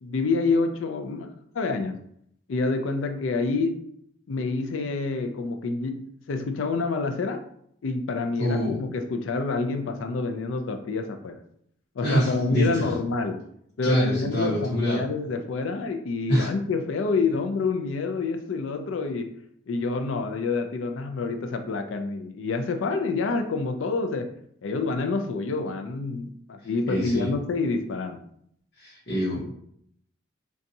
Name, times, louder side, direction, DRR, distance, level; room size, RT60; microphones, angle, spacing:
voice 1, 0.0-2.0 2.5-3.8 4.3-6.0 6.3-7.4 7.8-11.4 12.0-13.4 13.8-19.3 19.7-24.3 24.6-28.2, left 3 dB, 90° left, 6 dB, 0.4 m, -27 dB
voice 2, 8.4-8.8 12.0-12.9 13.8-15.0 16.3-16.5 26.9-27.3 28.8-29.5, equal, 55° left, -7 dB, 0.9 m, -25 dB
4.0 x 2.3 x 2.6 m, 0.69 s
head